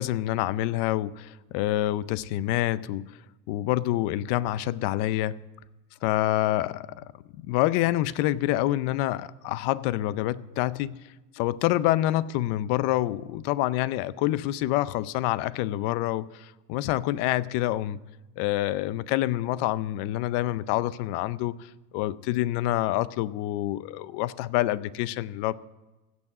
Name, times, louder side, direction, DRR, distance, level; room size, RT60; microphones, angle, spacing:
voice 1, 0.0-3.1 3.5-5.4 6.0-7.0 7.4-11.0 11.3-18.0 18.4-21.5 21.9-25.6, left 15 dB, 65° left, 0.6 m, -27 dB
16.0 x 6.2 x 7.6 m
cardioid pair, 150°, 43 cm